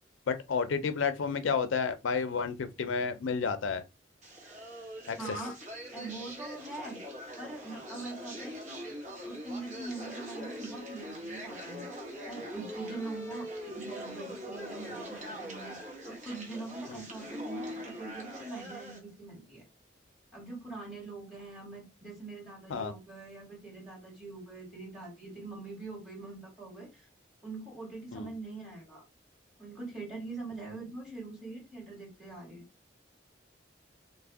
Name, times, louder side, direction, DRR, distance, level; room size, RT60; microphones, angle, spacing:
voice 1, 0.3-3.8 5.1-5.2 16.9-17.0 22.7-22.9 28.1-28.3, left 5 dB, 80° left, 0.4 m, -31 dB
sound 1, 4.2-19.0, equal, 40° right, 1.1 m, -42 dB
voice 2, 5.2-5.6 5.9-7.0 7.4-8.9 9.2-11.9 12.3-19.6 20.3-27.1 27.4-29.0 29.6-32.6, right 3 dB, 5° right, 2.1 m, -43 dB
3.3 x 2.1 x 3.4 m
head